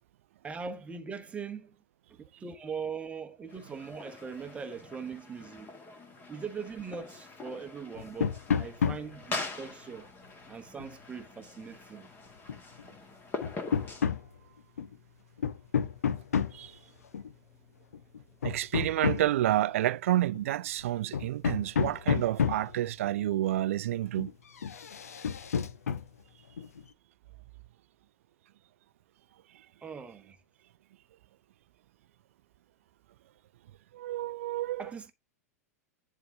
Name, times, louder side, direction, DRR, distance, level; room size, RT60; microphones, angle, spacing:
voice 1, 0.4-1.8 2.4-5.7 6.3-10.1 10.5-12.1 29.8-30.4 34.8-35.1, right 5 dB, 15° right, 1.0 m, -41 dB
sound 1, 3.5-14.1, left 3 dB, 20° left, 1.8 m, -43 dB
sound 2, 8.0-9.2 10.8-10.9 12.5-12.8 13.4-14.3 14.8-15.0 15.4-16.7 17.1-17.3 17.9-19.5 20.2-20.4 20.8-20.9 21.1-22.8 23.9-24.3 24.6-26.1 26.6-26.8, left 7 dB, 65° left, 0.7 m, -30 dB
voice 2, 18.4-24.3 33.9-34.8, right 13 dB, 55° right, 0.5 m, -29 dB
10.5 x 3.7 x 3.7 m
figure-of-eight pair, 95°, 9 cm